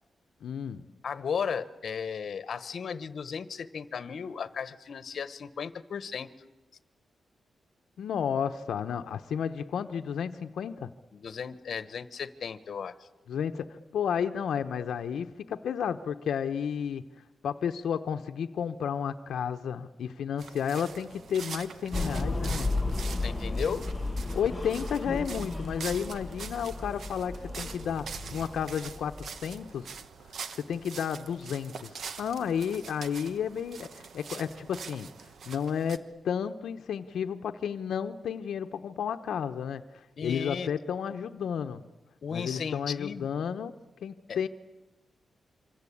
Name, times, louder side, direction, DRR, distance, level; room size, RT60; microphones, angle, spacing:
voice 1, 0.4-0.8 8.0-10.9 13.3-17.0 17.4-22.7 24.3-30.0 30.5-35.1 35.5-41.8 42.3-43.7 44.0-44.5, left 7 dB, 85° left, 8 dB, 0.9 m, -32 dB
voice 2, 1.0-6.3 11.1-13.1 23.2-23.8 40.2-40.7 42.2-43.4 44.3-44.4, left 6 dB, 55° left, 13 dB, 1.2 m, -35 dB
sound 1, 20.4-36.0, right 6 dB, 55° right, 1.4 m, -44 dB
sound 2, 21.9-30.0, left 2 dB, 10° left, 1.0 m, -34 dB
27.5 x 25.0 x 8.6 m, 1.1 s
wide cardioid pair, 175°, 0 cm